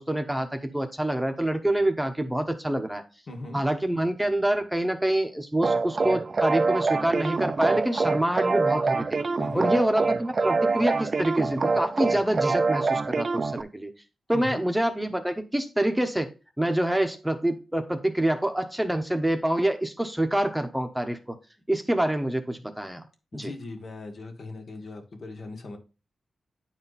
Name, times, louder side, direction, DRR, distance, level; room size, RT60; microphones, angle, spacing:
voice 1, 0.0-3.0 3.5-9.2 9.5-13.9 14.3-16.3 16.6-21.4 21.7-23.0 23.3-23.5, right 1 dB, 5° right, 5 dB, 1.0 m, -26 dB
voice 2, 3.3-3.6 9.4-9.8 14.3-14.6 23.3-25.8, left 2 dB, 60° left, 3 dB, 1.7 m, -39 dB
sound 1, 5.6-13.6, right 4 dB, 40° right, 0.5 m, -25 dB
9.6 x 4.3 x 4.1 m, 0.32 s
wide cardioid pair, 105°, 0 cm